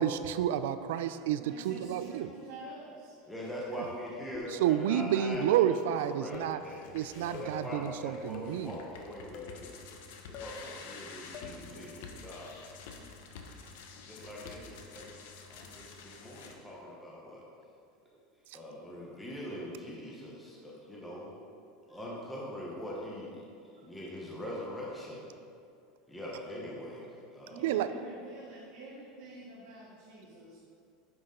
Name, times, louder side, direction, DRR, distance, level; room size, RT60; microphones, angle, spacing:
voice 1, 0.0-2.3 3.7-3.9 4.5-6.7 6.9-8.8 18.5-18.6 27.6-27.9, right 10 dB, 75° right, 12 dB, 0.4 m, -30 dB
voice 2, 1.4-3.3 6.3-6.4 7.1-7.3 27.5-30.6, right 1 dB, 55° right, -7 dB, 1.6 m, -48 dB
voice 3, 3.3-9.7 10.3-12.7 14.1-15.1 15.5-17.4 18.5-21.3 21.9-23.4 23.8-25.2 26.1-27.6, left 1 dB, 5° left, -5 dB, 1.0 m, -42 dB
sound 1, 4.3-4.7 5.3-5.7 6.3-6.7 7.3-7.6 8.3-8.7 9.3-9.6 10.3-10.6 11.3-11.6, left 5 dB, 35° left, 0.6 m, -45 dB
sound 2, 6.6-16.5, left 4 dB, 70° left, 0.9 m, -49 dB
9.5 x 6.0 x 3.8 m, 2.4 s
supercardioid pair, 180°, 0 cm